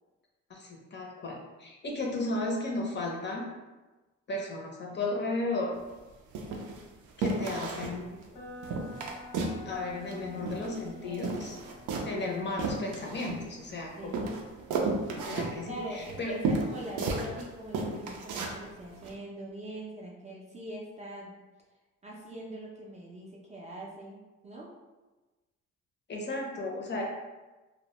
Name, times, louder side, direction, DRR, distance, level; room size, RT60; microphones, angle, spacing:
voice 1, 0.5-3.5 4.3-5.8 7.2-8.2 9.7-11.6 12.0-14.3 15.2-16.3 26.1-27.0, left 2 dB, 35° left, -1 dB, 0.5 m, -34 dB
sound 1, 5.7-5.9 6.3-6.8 7.2-8.0 8.2-8.3 8.6-9.6 9.9-10.9 11.1-13.7 14.1-17.4 17.7-18.6 19.0-19.1, right 3 dB, 80° right, 0.4 m, -33 dB
sound 2, 8.3-16.3, left 2 dB, 90° left, 0.8 m, -51 dB
voice 2, 11.0-11.4 14.0-14.4 15.7-21.3 22.0-24.7, right 1 dB, 25° right, -3 dB, 0.4 m, -42 dB
2.1 x 2.0 x 2.9 m, 1.2 s
cardioid pair, 90°, 30 cm